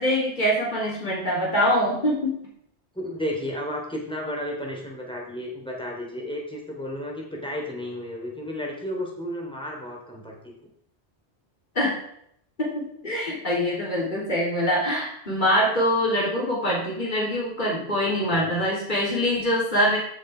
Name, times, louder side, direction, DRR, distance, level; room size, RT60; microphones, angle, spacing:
voice 1, 0.0-2.4 11.8-12.0 12.6-20.0, equal, 45° left, -4 dB, 3.8 m, -24 dB
voice 2, 2.9-10.3 17.9-18.5, left 1 dB, 5° left, -2 dB, 3.3 m, -33 dB
15.5 x 6.4 x 5.1 m, 0.70 s
omnidirectional pair, 1.1 m